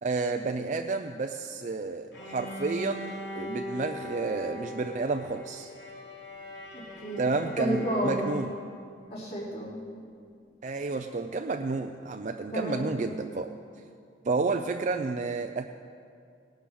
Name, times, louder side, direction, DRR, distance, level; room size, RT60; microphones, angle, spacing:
voice 1, 0.0-5.7 7.2-8.6 10.6-13.6 14.2-15.7, right 3 dB, 40° right, 6 dB, 0.4 m, -30 dB
Bowed string instrument, 2.1-8.9, left 1 dB, 80° left, 2.6 m, -41 dB
voice 2, 6.7-7.3 7.5-8.3 9.1-9.8 12.5-12.9, equal, 55° left, -8 dB, 4.1 m, -31 dB
18.5 x 11.5 x 4.7 m, 2.3 s
head